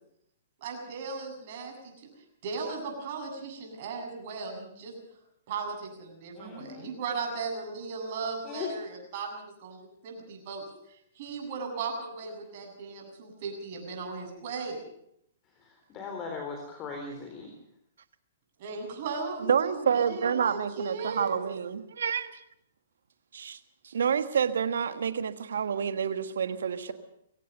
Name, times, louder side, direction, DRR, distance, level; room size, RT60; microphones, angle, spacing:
voice 1, 0.6-1.9 2.4-4.9 5.5-9.8 10.0-10.6 11.2-14.8 18.6-21.4, right 4 dB, 50° right, 2 dB, 7.8 m, -37 dB
voice 2, 6.3-6.9 8.4-8.7 15.5-17.5, left 4 dB, 30° left, 3 dB, 3.9 m, -39 dB
voice 3, 19.4-22.3 23.3-23.6 23.8-26.9, right 7 dB, 70° right, 11 dB, 1.5 m, -28 dB
23.0 x 17.0 x 6.8 m, 0.74 s
hypercardioid pair, 120°, 0 cm